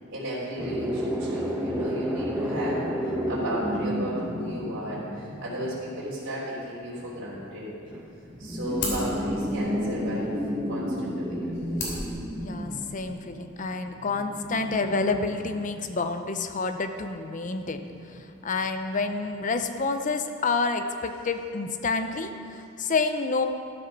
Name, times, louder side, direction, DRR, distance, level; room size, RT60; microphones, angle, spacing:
voice 1, 0.1-7.7 8.4-10.3 10.7-11.8, equal, 60° right, -8 dB, 3.4 m, -34 dB
sound 1, 0.6-5.8 7.0-7.4 7.9-16.0 17.8-18.6 19.0-19.1 19.4-19.5, equal, 10° right, 1.2 m, -31 dB
sound 2, 8.0-13.0, left 2 dB, 55° left, 3.0 m, -39 dB
voice 2, 12.3-17.9 18.1-23.4, left 4 dB, 35° left, 7 dB, 0.6 m, -29 dB
13.0 x 7.7 x 6.0 m, 2.6 s
head